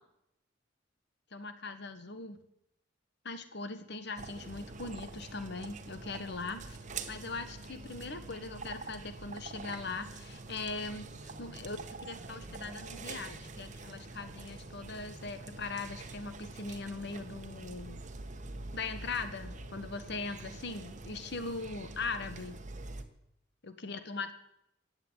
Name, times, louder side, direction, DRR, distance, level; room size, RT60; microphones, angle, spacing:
voice 1, 1.3-2.4 3.2-6.8 7.1-18.0 18.7-22.6 23.6-24.3, left 3 dB, 65° left, 10 dB, 1.5 m, -40 dB
sound 1, 4.2-23.0, right 3 dB, 40° right, 1.4 m, -45 dB
15.5 x 9.0 x 9.9 m, 0.81 s
head